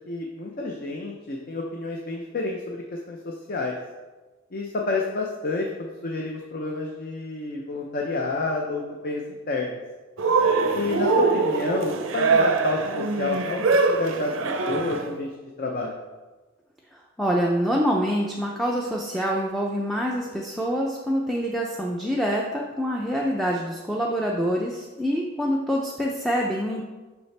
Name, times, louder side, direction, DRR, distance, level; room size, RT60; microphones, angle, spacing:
voice 1, 0.1-3.8 4.5-9.8 10.7-14.3 14.7-15.3 15.6-16.0, left 3 dB, 45° left, 0 dB, 0.6 m, -29 dB
Cheering, 10.2-15.1, right 4 dB, 70° right, 0.5 m, -23 dB
voice 2, 16.9-26.8, equal, ahead, -2 dB, 0.4 m, -26 dB
6.9 x 5.7 x 3.3 m, 1.2 s
head